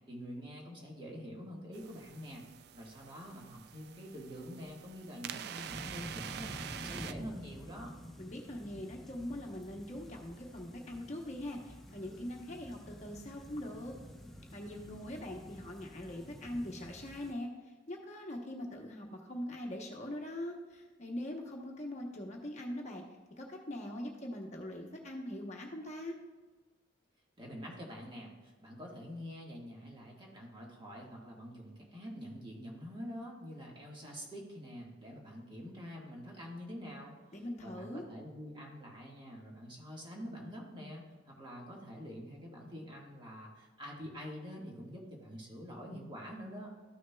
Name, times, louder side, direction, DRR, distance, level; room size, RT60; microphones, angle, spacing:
voice 1, 0.1-2.4 2.7-7.9 27.4-37.1 37.6-46.7, equal, 25° right, -2 dB, 1.6 m, -46 dB
sound 1, 1.7-7.1, right 9 dB, 55° right, 0.3 m, -46 dB
sound 2, 5.7-17.3, equal, ahead, 0.9 m, -50 dB
voice 2, 8.2-13.9 14.5-17.5 17.9-23.0 23.4-26.2 37.3-38.1, left 1 dB, 35° left, 1 dB, 0.9 m, -42 dB
13.0 x 6.4 x 2.3 m, 1.3 s
head